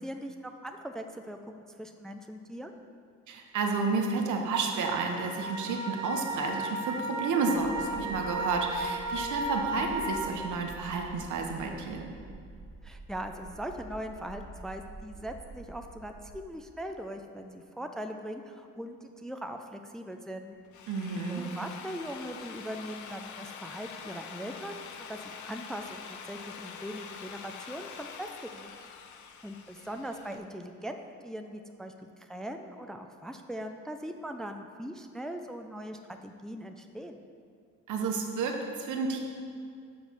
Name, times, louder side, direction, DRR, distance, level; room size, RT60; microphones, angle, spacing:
voice 1, 0.0-2.7 12.8-20.5 21.3-28.7 29.4-31.0 31.2-37.2, equal, ahead, 5 dB, 0.4 m, -40 dB
voice 2, 3.3-12.1 20.9-21.4 37.9-39.2, right 4 dB, 75° right, 2 dB, 1.1 m, -31 dB
sound 1, 4.7-10.3, right 1 dB, 55° right, 1.1 m, -35 dB
sound 2, 7.6-16.4, right 3 dB, 30° right, 1.0 m, -48 dB
Drill, 20.5-30.4, left 6 dB, 75° left, 0.7 m, -45 dB
6.3 x 5.2 x 6.1 m, 2.3 s
cardioid pair, 90°, 30 cm